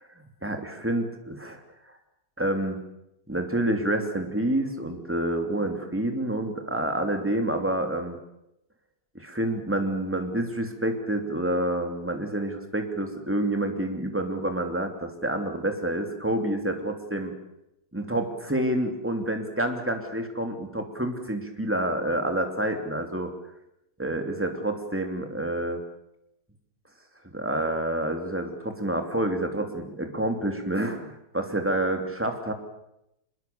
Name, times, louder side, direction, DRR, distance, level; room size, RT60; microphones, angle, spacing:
voice 1, 0.4-1.6 2.4-2.8 3.3-8.2 9.1-17.3 17.9-23.3 24.0-25.8 27.3-32.5, right 1 dB, 5° right, 4 dB, 2.8 m, -28 dB
25.0 x 22.0 x 7.0 m, 0.84 s
omnidirectional pair, 1.9 m